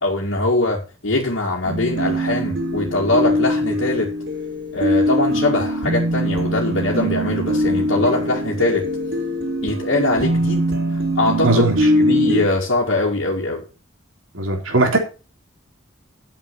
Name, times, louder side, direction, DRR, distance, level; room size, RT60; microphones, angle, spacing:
voice 1, 0.0-4.1 4.7-8.8 9.6-10.6 10.9-13.6, left 2 dB, 70° left, -3 dB, 2.2 m, -22 dB
sound 1, 1.6-12.4, equal, 70° right, 5.2 m, -22 dB
voice 2, 11.4-11.7 14.3-15.0, right 2 dB, 90° right, 3 dB, 3.3 m, -18 dB
8.6 x 7.4 x 6.9 m, 0.34 s
head